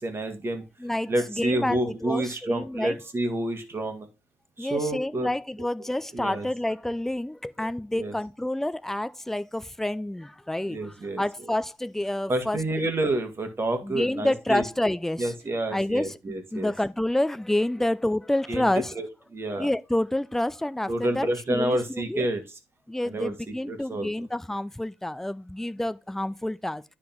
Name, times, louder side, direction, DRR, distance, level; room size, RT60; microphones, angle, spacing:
voice 1, 0.0-0.6 1.1-4.1 4.6-5.3 6.1-6.5 7.9-8.1 10.7-11.2 12.3-14.7 15.2-16.7 18.5-18.7 18.9-19.1 19.3-19.7 20.9-22.4 23.1-24.1, right 1 dB, 20° right, 1.8 m, -29 dB
voice 2, 0.8-3.0 4.6-12.6 13.8-15.3 15.7-18.9 19.6-22.3 22.9-26.8, left 1 dB, 5° left, 0.4 m, -28 dB
9.8 x 3.6 x 5.9 m
cardioid pair, 150°, 11 cm